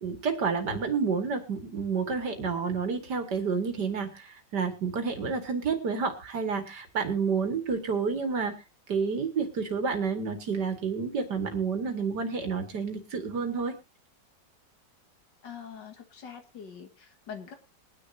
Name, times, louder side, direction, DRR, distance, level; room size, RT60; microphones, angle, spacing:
voice 1, 0.0-8.5 8.9-13.8, right 5 dB, 65° right, 7 dB, 2.4 m, -29 dB
voice 2, 15.4-17.5, left 7 dB, 75° left, 6 dB, 2.3 m, -44 dB
21.5 x 9.9 x 2.7 m, 0.26 s
omnidirectional pair, 1.9 m